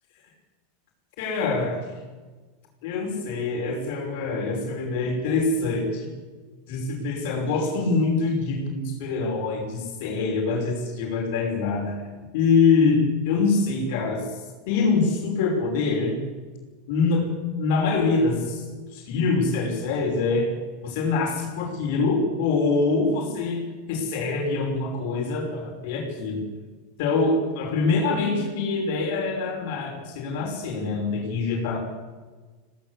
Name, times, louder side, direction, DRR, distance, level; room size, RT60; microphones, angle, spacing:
voice 1, 1.2-1.8 2.8-6.1 6.7-12.0 12.3-16.2 16.9-17.3 17.6-18.7 18.9-20.5 20.8-23.6 23.9-26.4 27.0-31.8, left 4 dB, 65° left, 1 dB, 5.8 m, -24 dB
20.5 x 17.5 x 8.4 m, 1.4 s
supercardioid pair, 125°, 0 cm